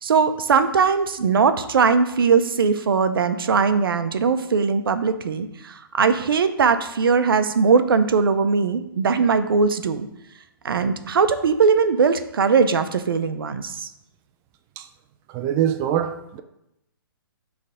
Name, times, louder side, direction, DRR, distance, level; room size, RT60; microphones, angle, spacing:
voice 1, 0.0-10.1 10.6-13.9, right 5 dB, 70° right, 0.6 m, -20 dB
voice 2, 15.3-16.4, right 10 dB, 20° right, 0.3 m, -24 dB
6.5 x 3.4 x 5.0 m
hypercardioid pair, 130°, 12 cm